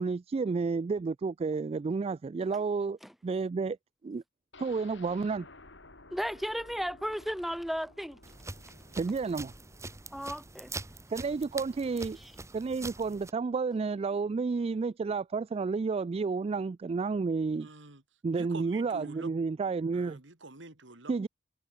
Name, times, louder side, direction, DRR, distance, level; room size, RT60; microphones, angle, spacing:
voice 1, 0.0-3.0 3.2-3.8 4.0-4.2 4.6-5.5 9.0-9.5 11.1-12.2 12.5-17.7 18.2-20.2 21.1-21.3, right 4 dB, 35° right, 0.3 m, -31 dB
sound 1, 4.5-12.4 12.8-12.9 13.2-13.3, left 2 dB, 75° left, 6.6 m, -55 dB
voice 2, 6.1-8.2 10.1-10.7 12.2-12.3, equal, ahead, 1.4 m, -34 dB
sound 2, 8.2-13.3, right 3 dB, 15° right, 1.7 m, -44 dB
voice 3, 17.5-18.0 18.3-19.3 19.9-21.3, right 2 dB, 80° right, 3.3 m, -47 dB
head